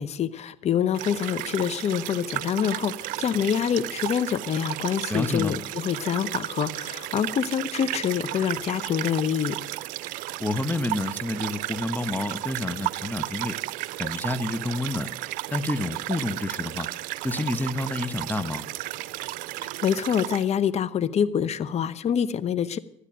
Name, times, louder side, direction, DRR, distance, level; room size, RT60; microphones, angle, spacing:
voice 1, 0.0-9.6 19.6-22.8, left 8 dB, 50° left, 13 dB, 0.9 m, -26 dB
sound 1, 0.9-20.5, right 16 dB, 70° right, 0.5 m, -33 dB
voice 2, 5.1-5.6 10.4-13.6 14.0-15.1 15.5-16.9 17.2-18.6, left 2 dB, 10° left, 10 dB, 1.0 m, -29 dB
13.0 x 9.9 x 9.1 m, 0.75 s
hypercardioid pair, 65°, 14 cm